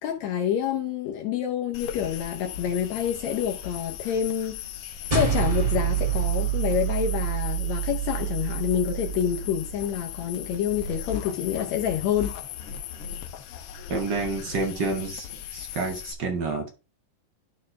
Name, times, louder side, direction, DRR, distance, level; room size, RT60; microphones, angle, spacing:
voice 1, 0.0-4.6 5.1-12.4, left 9 dB, 70° left, 1.8 m, -27 dB
sound 1, 1.7-16.1, left 9 dB, 90° left, 1.3 m, -38 dB
sound 2, 5.1-9.7, right 9 dB, 25° right, 0.8 m, -27 dB
voice 2, 13.9-16.7, right 3 dB, 55° right, 1.3 m, -29 dB
12.5 x 4.3 x 3.2 m
omnidirectional pair, 3.7 m